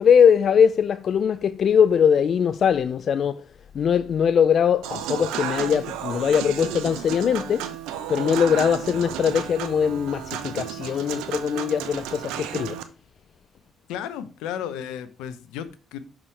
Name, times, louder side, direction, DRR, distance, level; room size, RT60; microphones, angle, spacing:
voice 1, 0.0-3.4 3.7-7.7 8.1-12.8, left 7 dB, 55° left, 0.3 m, -21 dB
Human voice / Acoustic guitar / Piano, 4.8-12.8, right 10 dB, 80° right, 0.7 m, -33 dB
voice 2, 13.9-16.0, left 9 dB, 80° left, 0.7 m, -33 dB
6.1 x 6.1 x 3.3 m
hypercardioid pair, 55°, 0 cm